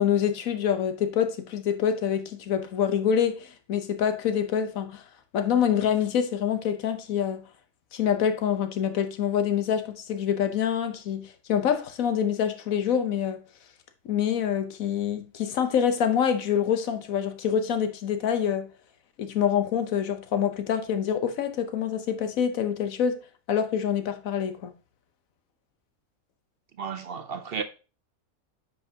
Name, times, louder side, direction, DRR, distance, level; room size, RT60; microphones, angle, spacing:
voice 1, 0.0-5.0 5.3-7.4 7.9-13.4 14.0-18.7 19.2-23.2 23.5-24.7, left 8 dB, 90° left, 1.3 m, -26 dB
voice 2, 26.8-27.6, right 6 dB, 55° right, 0.7 m, -33 dB
9.1 x 5.6 x 2.8 m
omnidirectional pair, 1.4 m